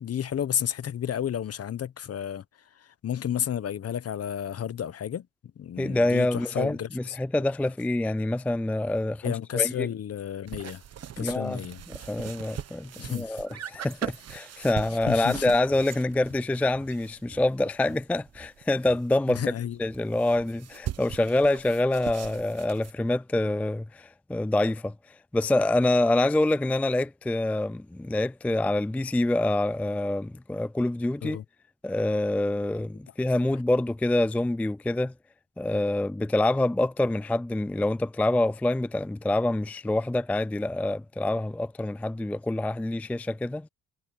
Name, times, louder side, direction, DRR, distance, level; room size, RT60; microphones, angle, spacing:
voice 1, 0.0-2.4 2.7-5.3 5.6-7.2 9.2-10.8 11.2-11.8 13.0-13.4 15.1-15.5 19.3-19.8 31.2-31.4, left 9 dB, 55° left, 1.3 m, -31 dB
voice 2, 5.8-9.9 11.2-11.6 11.9-19.5 19.8-31.4 31.8-35.1 35.6-43.7, left 2 dB, 5° left, 0.4 m, -26 dB
sound 1, 10.5-19.0 19.4-19.5 19.7-22.9, right 10 dB, 55° right, 1.3 m, -40 dB
sound 2, 15.6-18.0 18.3-18.5 18.9-19.0 19.3-19.5 19.8-20.5, right 3 dB, 20° right, 4.0 m, -51 dB
cardioid pair, 90°, 30 cm